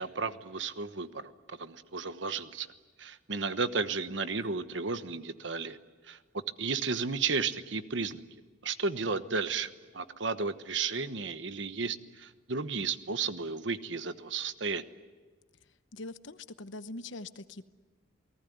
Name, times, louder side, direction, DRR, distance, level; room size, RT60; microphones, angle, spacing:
voice 1, 0.0-2.7 3.0-5.8 6.1-6.2 6.6-8.2 8.6-14.8, right 4 dB, 65° right, 11 dB, 1.2 m, -33 dB
voice 2, 15.9-17.6, left 2 dB, 70° left, 12 dB, 1.0 m, -42 dB
29.0 x 19.0 x 9.5 m, 1.3 s
head